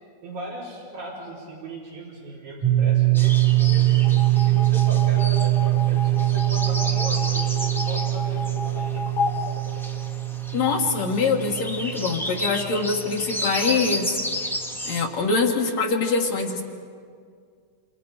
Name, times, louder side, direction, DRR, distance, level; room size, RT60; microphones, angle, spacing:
voice 1, 0.2-4.0 4.4-9.1, right 1 dB, 90° right, -7 dB, 6.3 m, -38 dB
sound 1, 2.6-13.2, right 17 dB, 75° right, 5.8 m, -22 dB
sound 2, 3.1-15.0, equal, 5° left, 0.3 m, -33 dB
sound 3, 4.0-10.5, left 4 dB, 85° left, 3.3 m, -33 dB
voice 2, 10.5-14.2 14.9-16.6, left 4 dB, 65° left, -1 dB, 2.9 m, -24 dB
28.0 x 27.5 x 5.2 m, 2.1 s
omnidirectional pair, 3.4 m